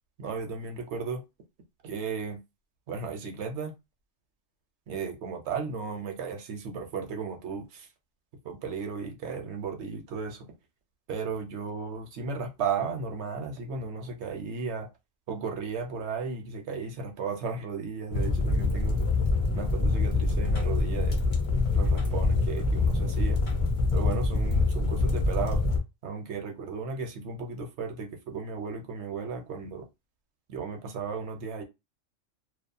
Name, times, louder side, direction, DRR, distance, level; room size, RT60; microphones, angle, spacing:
voice 1, 0.2-1.2 1.8-2.4 2.9-3.7 4.9-7.9 8.4-10.5 11.1-14.9 15.3-19.0 19.5-21.2 21.7-23.4 23.9-25.6 26.0-29.9 30.5-31.6, right 5 dB, 65° right, 0.9 m, -35 dB
sound 1, 18.1-25.8, left 3 dB, 40° left, 0.5 m, -25 dB
2.6 x 2.4 x 2.2 m
omnidirectional pair, 1.3 m